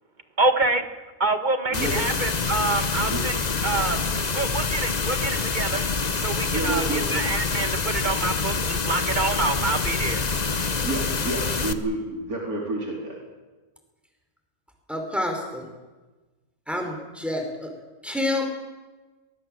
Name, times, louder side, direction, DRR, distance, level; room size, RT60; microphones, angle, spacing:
voice 1, 0.4-0.8 1.2-4.0 4.3-5.8 6.2-10.2, right 2 dB, 30° right, 9 dB, 1.7 m, -26 dB
sound 1, 1.7-11.7, left 4 dB, 30° left, 1.0 m, -26 dB
voice 2, 6.5-7.2 10.3-10.4 10.8-13.1, right 2 dB, 80° right, -1 dB, 4.5 m, -29 dB
voice 3, 14.9-15.7 16.7-17.7 18.0-18.5, left 1 dB, ahead, 2 dB, 4.8 m, -28 dB
23.5 x 20.0 x 7.7 m, 1.2 s
omnidirectional pair, 1.5 m